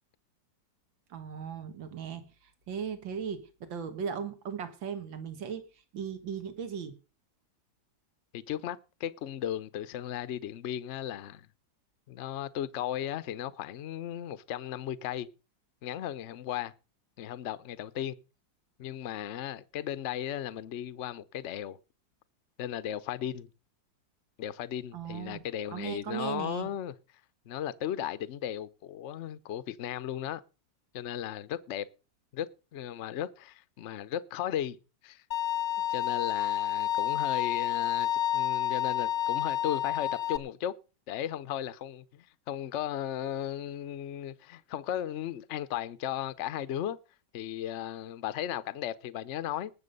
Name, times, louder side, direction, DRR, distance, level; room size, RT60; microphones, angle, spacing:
voice 1, 1.1-5.6 5.9-6.9 24.9-25.4 25.7-26.7, right 7 dB, 85° right, 2.2 m, -37 dB
voice 2, 8.3-11.5 12.1-15.3 15.8-16.7 17.2-18.2 18.8-21.8 22.6-23.5 24.4-26.9 27.5-30.4 30.9-31.9 32.3-34.8 35.0-35.2 35.9-40.7 41.1-47.0 47.3-49.7, left 11 dB, 55° left, 0.8 m, -36 dB
Bowed string instrument, 35.3-40.4, left 11 dB, 75° left, 0.4 m, -29 dB
19.5 x 7.0 x 5.3 m
omnidirectional pair, 2.0 m